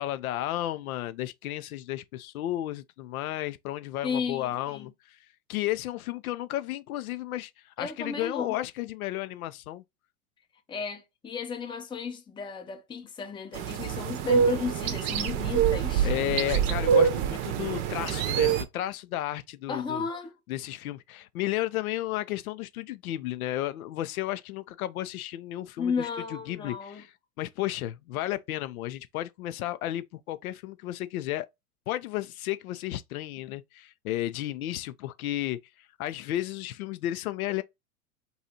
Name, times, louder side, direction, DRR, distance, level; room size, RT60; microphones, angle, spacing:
voice 1, 0.0-5.2 5.5-9.8 16.0-20.1 20.5-27.1 27.4-31.5 31.9-35.6 36.0-37.6, left 14 dB, 70° left, 0.5 m, -33 dB
voice 2, 4.0-4.9 7.8-8.5 10.7-16.1 19.7-20.3 25.8-27.0, left 5 dB, 10° left, 0.6 m, -34 dB
sound 1, 13.5-18.6, right 8 dB, 40° right, 0.7 m, -25 dB
2.7 x 2.4 x 4.1 m
hypercardioid pair, 110°, 44 cm